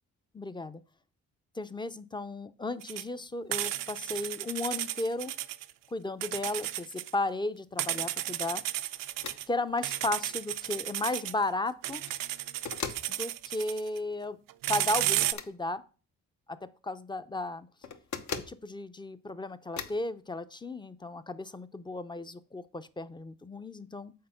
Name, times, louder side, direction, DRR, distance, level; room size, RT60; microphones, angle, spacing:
voice 1, 0.3-0.8 1.6-5.3 5.9-8.6 9.5-12.0 13.1-14.4 14.7-15.8 16.5-17.7 18.3-24.1, left 2 dB, 15° left, 13 dB, 0.5 m, -34 dB
sound 1, 2.8-3.0 3.5-5.7 6.2-7.1 7.8-9.5 9.8-11.3 11.8-14.0 14.5-15.3, right 14 dB, 90° right, 0.5 m, -33 dB
sound 2, 9.2-9.4 9.8-9.9 11.8-12.2 12.7-13.1 15.2-15.5 17.8-18.6 19.8-20.0, left 5 dB, 65° left, 0.9 m, -38 dB
6.6 x 4.3 x 5.6 m, 0.37 s
cardioid pair, 75°, 32 cm